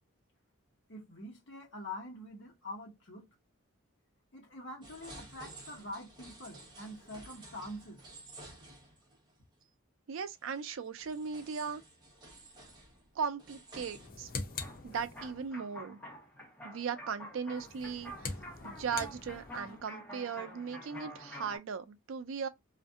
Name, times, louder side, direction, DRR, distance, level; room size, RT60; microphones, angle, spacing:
voice 1, 0.9-3.3 4.3-8.0, left 1 dB, 60° left, 1.1 m, -45 dB
sound 1, 4.8-9.3 9.6-9.7 10.4-14.1, right 2 dB, 20° right, 1.0 m, -52 dB
voice 2, 10.1-11.8 13.1-14.3 14.8-16.0 16.6-18.4 18.6-22.5, right 6 dB, 70° right, 0.4 m, -38 dB
sound 2, 13.9-15.5 17.5-19.8, left 4 dB, 45° left, 0.5 m, -43 dB
sound 3, 14.6-21.6, equal, 5° left, 1.0 m, -48 dB
2.6 x 2.5 x 2.3 m
head